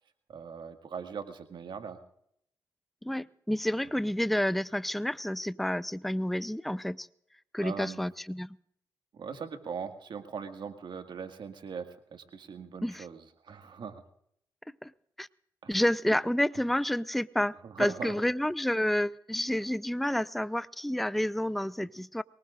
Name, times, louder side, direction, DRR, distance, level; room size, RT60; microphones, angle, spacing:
voice 1, 0.3-2.0 7.6-8.0 9.1-14.0 15.6-15.8 17.6-18.2, right 6 dB, 70° right, 6 dB, 1.9 m, -40 dB
voice 2, 3.0-7.1 7.5-8.6 12.8-13.1 14.8-14.9 15.2-15.3 15.7-22.2, left 1 dB, ahead, 17 dB, 0.5 m, -29 dB
23.0 x 19.0 x 2.5 m, 0.71 s
supercardioid pair, 45°, 8 cm